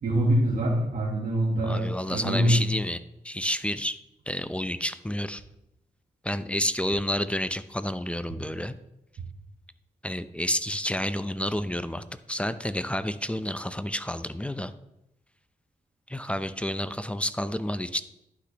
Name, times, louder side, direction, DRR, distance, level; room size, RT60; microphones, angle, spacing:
voice 1, 0.0-2.6, right 1 dB, 75° right, -3 dB, 1.5 m, -24 dB
voice 2, 1.6-3.0 3.2-4.0 4.3-5.4 6.2-8.7 10.0-14.7 16.1-18.0, equal, 10° left, 13 dB, 0.6 m, -30 dB
11.5 x 6.0 x 3.1 m, 0.84 s
supercardioid pair, 45°, 15 cm